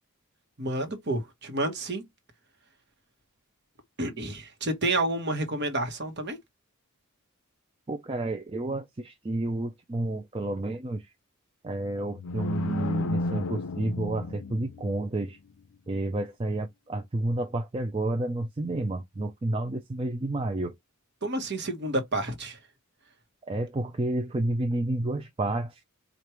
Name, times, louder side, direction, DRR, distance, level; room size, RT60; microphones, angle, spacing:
voice 1, 0.6-2.0 4.0-6.4 21.2-22.6, right 2 dB, 50° right, 1.2 m, -29 dB
voice 2, 7.9-11.0 11.6-15.4 15.9-20.7 23.5-25.8, right 2 dB, 25° right, 0.4 m, -30 dB
sound 1, 12.1-15.1, left 2 dB, 65° left, 0.5 m, -32 dB
4.7 x 2.5 x 3.0 m
head